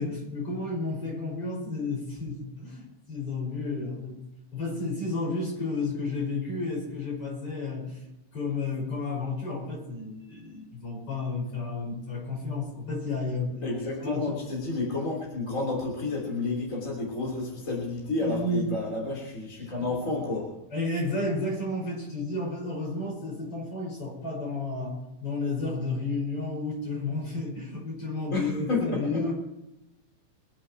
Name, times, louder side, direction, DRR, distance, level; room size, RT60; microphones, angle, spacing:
voice 1, 0.0-4.2 4.5-8.0 8.3-14.4 18.2-18.7 20.7-29.3, left 3 dB, 45° left, -2 dB, 6.6 m, -32 dB
voice 2, 13.6-20.6 28.3-29.2, left 2 dB, 25° left, -2 dB, 3.4 m, -30 dB
24.0 x 10.0 x 4.6 m, 0.94 s
omnidirectional pair, 3.7 m